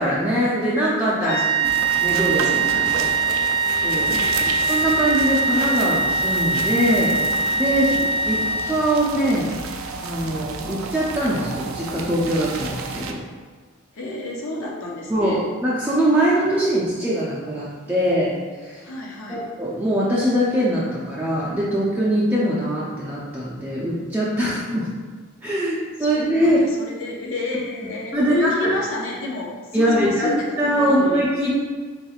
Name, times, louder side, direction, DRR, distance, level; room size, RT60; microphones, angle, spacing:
voice 1, 0.0-1.4 2.0-2.6 3.7-4.1 4.7-7.2 7.6-8.0 8.2-8.4 8.7-9.5 10.0-13.2 15.1-18.3 18.6-18.8 19.3-24.9 25.4-26.6 28.1-28.7 29.7-30.3 30.6-31.5, right 1 dB, 10° right, -8 dB, 0.5 m, -22 dB
voice 2, 1.2-1.7 2.4-3.3 4.0-4.6 7.8-8.1 13.9-15.4 18.8-19.5 26.0-31.3, left 2 dB, 65° left, -2 dB, 0.5 m, -30 dB
sound 1, 1.3-9.1, right 4 dB, 80° left, 1.1 m, -22 dB
sound 2, 1.6-13.1, right 4 dB, 70° right, 0.4 m, -32 dB
4.3 x 3.8 x 2.4 m, 1.5 s
head